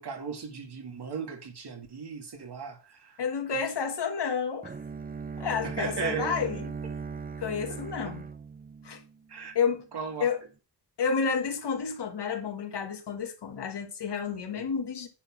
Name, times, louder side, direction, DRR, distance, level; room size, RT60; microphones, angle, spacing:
voice 1, 0.0-3.2 5.6-6.5 7.7-7.8 9.3-9.5 9.9-10.3 14.6-14.7, right 6 dB, 70° right, 2.3 m, -36 dB
voice 2, 3.2-4.7 5.4-6.6 7.4-8.2 8.8-9.0 9.5-9.9 10.2-10.4 11.0-15.1, left 6 dB, 75° left, 1.5 m, -30 dB
Bowed string instrument, 4.6-9.6, right 5 dB, 25° right, 0.4 m, -39 dB
10.0 x 4.0 x 6.0 m
wide cardioid pair, 160°, 41 cm